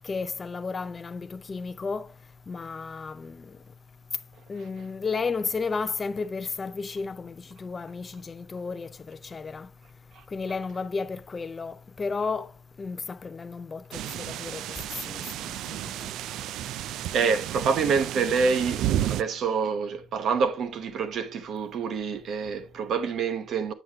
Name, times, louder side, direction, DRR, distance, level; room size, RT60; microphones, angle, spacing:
voice 1, 0.0-2.1 2.5-3.5 4.5-9.7 10.3-12.5 12.8-14.6 15.0-16.1, left 4 dB, 25° left, 0.4 m, -33 dB
sound 1, 13.9-19.2, right 12 dB, 85° right, 0.3 m, -32 dB
voice 2, 16.7-23.7, right 5 dB, 60° right, 1.0 m, -27 dB
7.9 x 7.4 x 2.4 m
cardioid pair, 140°, 0 cm